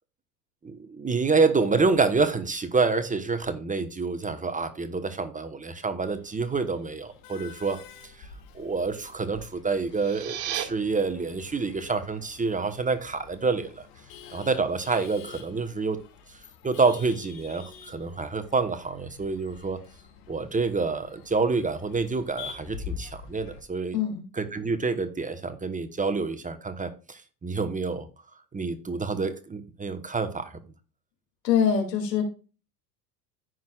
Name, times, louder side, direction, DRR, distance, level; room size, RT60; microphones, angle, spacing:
voice 1, 0.6-7.8 8.2-8.3 8.5-13.9 14.3-16.0 16.6-19.8 20.3-24.0 24.3-28.1 28.5-30.5, right 4 dB, 15° right, 1.1 m, -27 dB
Male speech man speaking / Laughter / Chatter, 6.1-23.6, left 7 dB, 60° left, 2.4 m, -46 dB
sound 1, 9.8-10.6, right 11 dB, 55° right, 1.9 m, -33 dB
voice 2, 23.9-24.2 31.4-32.2, left 8 dB, 75° left, 2.6 m, -23 dB
15.0 x 6.3 x 2.4 m
hypercardioid pair, 75°, 50 cm